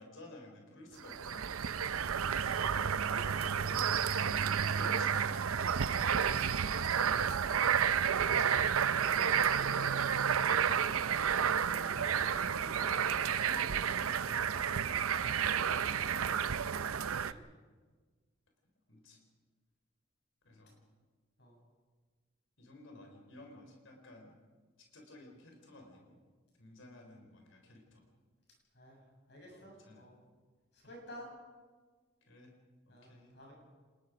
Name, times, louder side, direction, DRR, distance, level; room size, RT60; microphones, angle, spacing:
voice 1, 0.0-1.7 3.7-5.5 6.9-7.2 9.5-11.1 12.3-16.5 18.9-19.2 20.4-20.8 22.6-24.3 24.8-26.2 26.6-28.0 29.5-30.1 32.3-32.5 32.9-33.3, left 2 dB, 70° left, 2 dB, 4.2 m, -54 dB
sound 1, 1.0-17.3, right 7 dB, 85° right, 0.6 m, -31 dB
voice 2, 2.5-3.7 6.8-7.1 8.8-9.6 11.3-12.4 17.2-17.4 21.4-21.6 28.7-29.0 29.3-30.2 30.7-31.3 32.9-33.5, equal, 55° left, -1 dB, 7.9 m, -52 dB
sound 2, 7.5-13.5, equal, 15° right, 5.8 m, -57 dB
26.0 x 21.0 x 5.2 m, 1.4 s
head